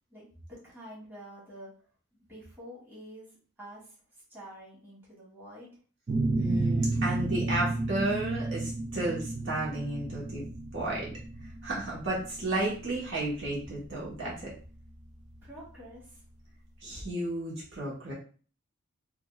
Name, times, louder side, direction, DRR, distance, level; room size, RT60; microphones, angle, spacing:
voice 1, 0.1-1.7 2.3-3.3 3.6-3.9 4.3-5.7 15.4-16.2, equal, 10° right, -8 dB, 1.7 m, -47 dB
sound 1, 6.1-15.5, right 2 dB, 35° right, 0.4 m, -32 dB
voice 2, 6.4-10.5 10.7-11.1 11.6-14.5 16.8-18.1, right 2 dB, 60° right, -5 dB, 1.2 m, -33 dB
5.0 x 2.4 x 2.4 m, 0.40 s
head